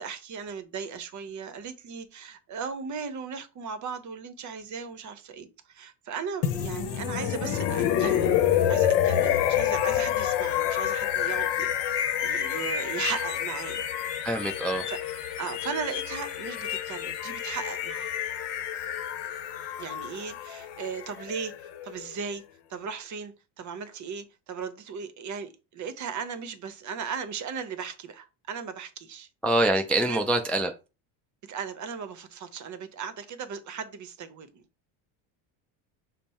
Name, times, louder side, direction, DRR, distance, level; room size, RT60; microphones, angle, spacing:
voice 1, 0.0-8.4 8.7-13.8 14.9-15.0 15.4-18.1 19.8-22.4 22.7-29.3 30.1-30.3 31.4-34.6, right 6 dB, 40° right, 0.8 m, -37 dB
sound 1, 6.4-22.3, left 10 dB, 65° left, 0.8 m, -28 dB
voice 2, 14.2-14.9 29.4-30.7, right 1 dB, 5° left, 0.3 m, -25 dB
5.3 x 2.1 x 4.2 m
supercardioid pair, 95°, 44 cm